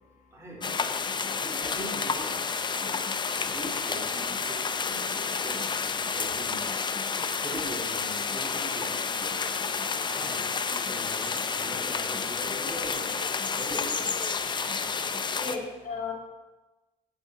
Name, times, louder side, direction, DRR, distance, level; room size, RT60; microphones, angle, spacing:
voice 1, 0.3-0.7 1.4-2.4 2.8-3.0 3.4-5.9 6.1-6.9 7.4-9.4 10.1-13.2 13.6-14.1, right 1 dB, 15° right, -4 dB, 4.0 m, -42 dB
sound 1, 0.6-15.6, left 5 dB, 25° left, 0.7 m, -30 dB
voice 2, 15.3-16.1, left 4 dB, 50° left, -3 dB, 4.2 m, -35 dB
8.4 x 8.0 x 6.1 m, 1.1 s
cardioid pair, 110°, 17 cm